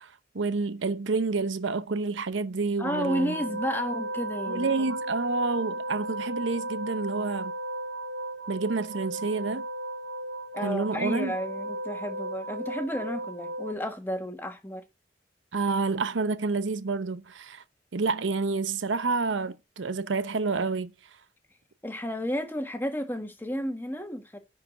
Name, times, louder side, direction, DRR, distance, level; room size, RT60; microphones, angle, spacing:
voice 1, 0.0-3.4 4.5-7.5 8.5-9.6 10.6-11.4 15.5-17.6 17.9-20.9, right 4 dB, 80° right, 0.7 m, -29 dB
voice 2, 2.8-4.7 10.5-14.8 21.8-24.4, equal, 10° left, 1.3 m, -32 dB
sound 1, 2.8-13.7, right 1 dB, 60° right, 2.8 m, -35 dB
10.5 x 4.7 x 6.3 m
head